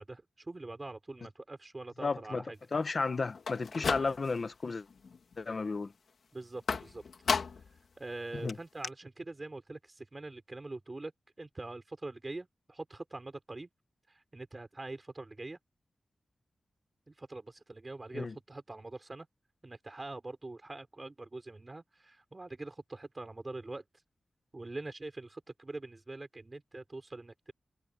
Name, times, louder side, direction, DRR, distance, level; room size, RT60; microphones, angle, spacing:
voice 1, 0.0-2.6 3.7-4.1 6.3-7.0 8.0-11.1 11.4-13.7 14.1-15.6 17.1-19.3 19.6-23.8 24.5-27.5, right 2 dB, 25° right, 4.6 m, -44 dB
voice 2, 2.0-2.4 2.7-4.9 5.4-5.9 8.4-8.5 18.1-18.3, left 4 dB, 40° left, 1.2 m, -33 dB
sound 1, 3.3-4.5 4.9-5.4 6.7-7.8 8.1-8.2 8.5-8.6 8.8-8.9, left 5 dB, 65° left, 2.8 m, -34 dB
wide cardioid pair, 175°, 0 cm